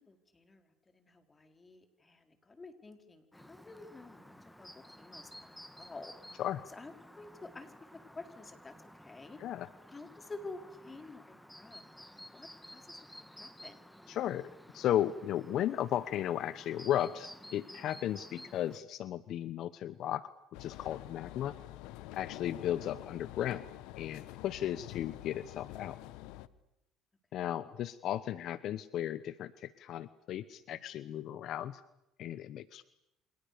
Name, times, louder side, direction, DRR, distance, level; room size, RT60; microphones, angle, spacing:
voice 1, 0.0-6.1 6.7-9.4 9.9-13.0 13.3-13.8 27.4-27.7, left 3 dB, 20° left, 7 dB, 4.5 m, -50 dB
Chirp tweet, 3.3-18.8, equal, ahead, 1.9 m, -53 dB
voice 2, 9.4-9.7 14.1-20.3 20.6-21.5 22.1-23.6 24.0-26.0 27.3-31.8 32.2-32.8, left 11 dB, 60° left, 15 dB, 1.0 m, -35 dB
sound 1, 20.5-26.5, left 16 dB, 80° left, 1.3 m, -47 dB
29.5 x 26.5 x 6.8 m, 0.88 s
supercardioid pair, 100°, 0 cm